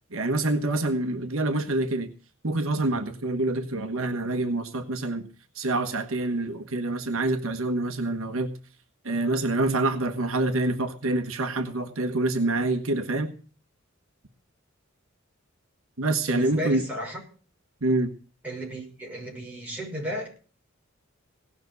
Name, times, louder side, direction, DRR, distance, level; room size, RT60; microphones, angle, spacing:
voice 1, 0.1-2.1 2.4-5.3 5.5-8.5 9.0-13.3 16.0-16.8 17.8-18.1, right 2 dB, 70° right, 7 dB, 1.4 m, -26 dB
voice 2, 16.3-17.2 18.4-20.3, right 1 dB, 5° right, -2 dB, 6.4 m, -34 dB
18.0 x 6.1 x 8.1 m, 0.39 s
head